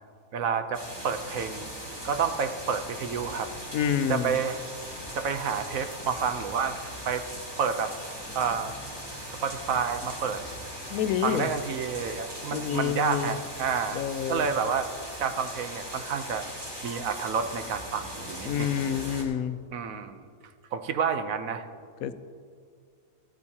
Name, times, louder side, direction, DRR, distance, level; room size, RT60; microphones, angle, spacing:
voice 1, 0.3-1.7 2.0-3.5 4.1-4.6 5.1-6.8 7.1-7.3 7.6-7.9 8.3-8.7 9.3-10.4 11.2-14.0 14.3-14.9 15.2-16.4 16.8-18.7 19.7-20.2 20.7-21.7, right 6 dB, 70° right, 8 dB, 1.1 m, -29 dB
lluvia y trueno lejano, 0.7-19.2, equal, 15° right, 2.4 m, -39 dB
voice 2, 3.7-4.4 10.9-11.5 12.5-13.4 13.9-14.5 18.5-19.6 22.0-22.1, left 9 dB, 80° left, 12 dB, 1.0 m, -28 dB
15.0 x 13.5 x 2.8 m, 2.1 s
omnidirectional pair, 1.5 m